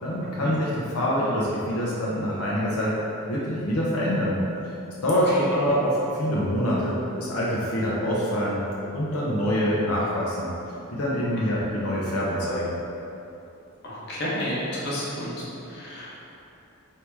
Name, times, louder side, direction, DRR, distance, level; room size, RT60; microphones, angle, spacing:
voice 1, 0.0-2.9 3.3-4.3 5.0-8.6 8.9-10.5 10.9-12.7, equal, 85° left, -6 dB, 0.7 m, -25 dB
voice 2, 13.8-16.2, equal, 50° left, -7 dB, 1.0 m, -31 dB
3.4 x 2.8 x 4.5 m, 2.8 s
head